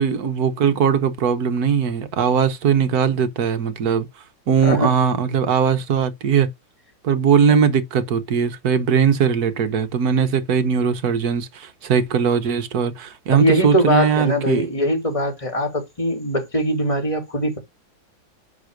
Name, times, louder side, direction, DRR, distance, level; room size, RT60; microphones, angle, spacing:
voice 1, 0.0-4.1 4.5-6.5 7.0-14.7, right 7 dB, 55° right, 1.4 m, -19 dB
voice 2, 4.6-4.9 7.5-7.6 13.3-17.6, equal, 15° left, 3.0 m, -21 dB
10.5 x 3.6 x 6.5 m
omnidirectional pair, 2.1 m